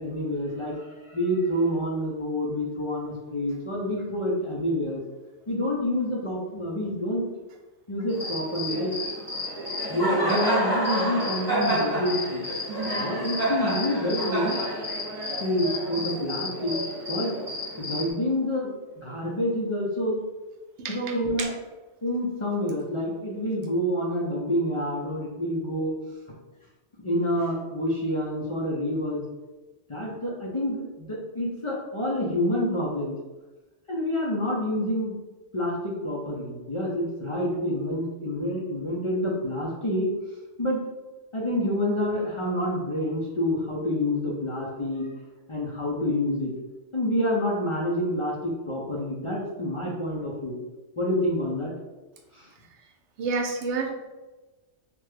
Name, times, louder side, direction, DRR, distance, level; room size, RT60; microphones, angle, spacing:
voice 1, 0.0-5.0 5.5-7.2 7.9-8.9 9.9-12.4 13.0-14.6 15.4-16.8 17.1-17.3 17.8-20.2 20.9-21.5 22.0-26.0 27.0-29.3 29.9-33.1 33.9-35.2 35.5-40.1 40.6-40.8 41.3-45.1 45.5-46.5 46.9-50.6 51.0-51.7 52.3-52.5, left 1 dB, 40° left, -4 dB, 0.4 m, -28 dB
Cricket, 8.1-18.1, equal, 30° right, 1.0 m, -29 dB
voice 2, 53.2-53.9, right 4 dB, 80° right, 2 dB, 0.9 m, -28 dB
3.3 x 2.2 x 3.3 m, 1.1 s
omnidirectional pair, 1.2 m